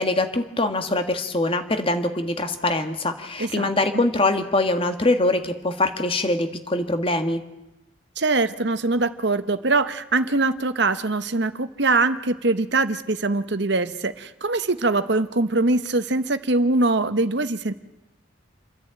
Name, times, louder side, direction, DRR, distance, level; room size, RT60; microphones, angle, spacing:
voice 1, 0.0-7.4, left 2 dB, 25° left, 8 dB, 1.4 m, -23 dB
voice 2, 3.4-4.0 8.2-17.7, right 3 dB, 55° right, 11 dB, 1.0 m, -23 dB
28.5 x 10.5 x 8.9 m, 1.0 s
head